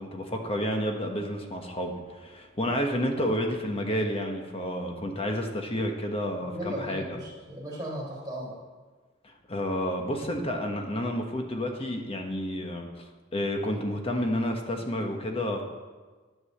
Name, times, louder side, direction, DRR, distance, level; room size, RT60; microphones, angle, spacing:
voice 1, 0.0-7.2 9.2-13.0 13.3-15.6, equal, 30° left, 3 dB, 1.3 m, -30 dB
voice 2, 6.5-8.6, equal, 15° right, -7 dB, 3.5 m, -36 dB
11.5 x 7.9 x 6.7 m, 1.4 s
head